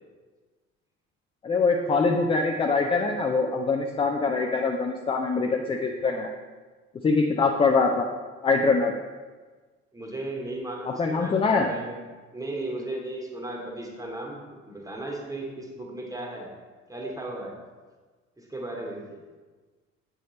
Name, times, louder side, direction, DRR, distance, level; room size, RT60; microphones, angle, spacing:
voice 1, 1.4-6.3 7.0-8.1 8.4-8.9 11.0-11.7, left 4 dB, 15° left, 2 dB, 0.4 m, -23 dB
voice 2, 9.9-12.0 12.3-16.5 16.9-17.6 18.4-19.2, right 2 dB, 10° right, 0 dB, 1.2 m, -36 dB
7.6 x 3.4 x 4.0 m, 1.4 s
figure-of-eight pair, 55°, 37 cm